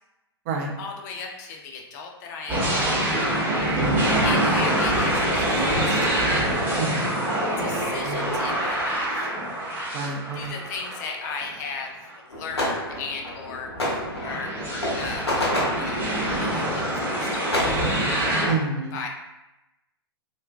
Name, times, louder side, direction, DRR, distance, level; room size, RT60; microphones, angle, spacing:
voice 1, 0.8-3.1 4.2-6.1 7.6-9.3 10.3-15.5 15.7-17.8 18.9-19.1, left 5 dB, 45° left, 2 dB, 0.4 m, -36 dB
sound 1, 2.5-11.5 12.1-12.2 13.6-18.5, right 1 dB, 15° right, 0.8 m, -25 dB
voice 2, 3.8-4.1 6.8-7.1 8.1-8.3 9.9-10.5 18.5-19.0, right 4 dB, 40° right, 1 dB, 0.5 m, -28 dB
sound 2, 12.3-17.7, left 1 dB, 85° left, 0.8 m, -29 dB
2.9 x 2.4 x 2.3 m, 0.98 s
figure-of-eight pair, 110°, 13 cm